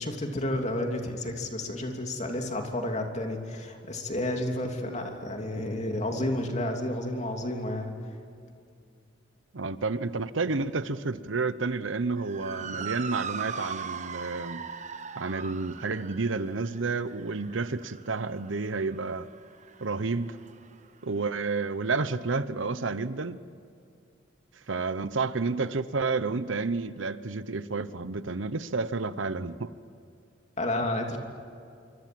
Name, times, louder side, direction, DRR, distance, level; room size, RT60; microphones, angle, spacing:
voice 1, 0.0-7.9 12.7-12.9 30.6-31.2, left 1 dB, 35° left, 3.0 m, -31 dB
voice 2, 9.5-14.7 15.2-19.3 19.8-20.4 21.0-23.4 24.7-29.7, right 3 dB, 85° right, 0.9 m, -30 dB
Motor vehicle (road) / Siren, 12.2-20.7, right 6 dB, 40° right, 1.1 m, -40 dB
27.0 x 25.0 x 7.8 m
head